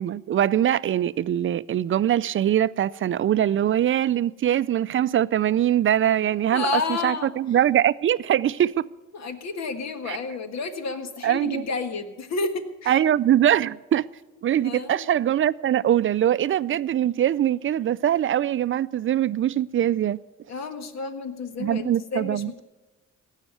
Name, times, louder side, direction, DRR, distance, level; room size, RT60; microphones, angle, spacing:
voice 1, 0.0-6.7 7.0-8.8 10.1-10.2 11.2-11.6 12.9-14.0 14.4-20.2 21.6-22.5, right 11 dB, 45° right, 0.4 m, -22 dB
voice 2, 6.5-7.3 9.1-13.0 14.6-15.1 20.5-22.6, left 4 dB, 60° left, 1.5 m, -31 dB
16.5 x 6.5 x 9.1 m
cardioid pair, 90°, 30 cm